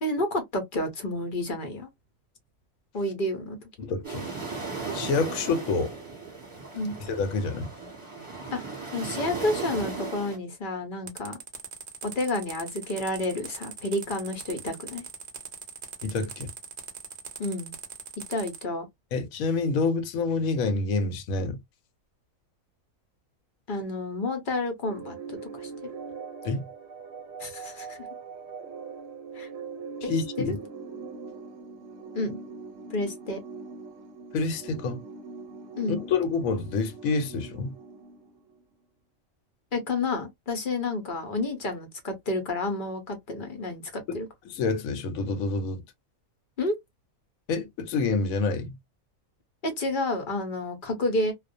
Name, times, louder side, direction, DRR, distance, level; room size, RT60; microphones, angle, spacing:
voice 1, 0.0-1.9 2.9-3.7 6.7-6.9 8.5-8.6 8.9-11.4 12.0-15.0 17.4-17.7 18.3-18.8 23.7-25.7 27.4-28.1 29.3-29.5 30.0-30.1 30.4-30.5 32.1-32.4 32.9-33.4 35.8-36.0 39.7-44.3 46.6-46.7 49.6-51.3, left 2 dB, 45° left, 0.7 m, -30 dB
voice 2, 3.8-4.5 4.9-5.9 7.0-7.7 16.0-16.5 19.1-21.6 26.4-26.7 30.0-30.6 34.3-35.0 35.9-37.8 44.1-44.2 44.5-45.8 47.5-48.8, left 4 dB, 80° left, 1.0 m, -28 dB
sound 1, 4.0-10.4, right 4 dB, 25° right, 1.0 m, -36 dB
sound 2, 11.1-18.6, right 6 dB, 45° right, 0.6 m, -41 dB
sound 3, 24.9-38.6, right 5 dB, 70° right, 0.9 m, -42 dB
2.4 x 2.1 x 2.5 m
omnidirectional pair, 1.4 m